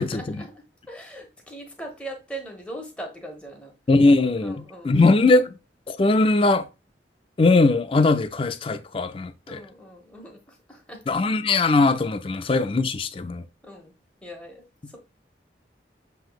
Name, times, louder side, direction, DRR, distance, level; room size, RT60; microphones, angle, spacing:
voice 1, 0.0-3.7 4.4-4.9 9.5-11.0 13.6-14.0 14.2-14.6, right 1 dB, 5° left, 1.2 m, -40 dB
voice 2, 3.9-5.5 5.9-6.7 7.4-9.6 11.1-13.4, left 3 dB, 30° left, 0.4 m, -20 dB
7.6 x 3.0 x 2.3 m
head